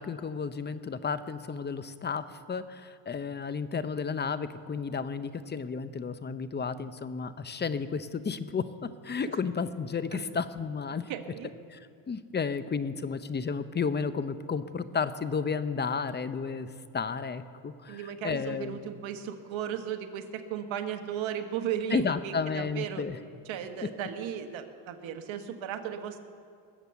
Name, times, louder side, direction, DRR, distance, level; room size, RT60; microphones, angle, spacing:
voice 1, 0.0-11.0 11.7-11.8 12.1-16.7 16.9-18.8 21.9-23.2, left 5 dB, 20° left, 13 dB, 0.7 m, -32 dB
voice 2, 11.1-11.5 17.9-23.0 23.5-26.2, right 9 dB, 70° right, 7 dB, 1.4 m, -35 dB
21.5 x 8.0 x 6.9 m, 2.2 s
cardioid pair, 100°, 48 cm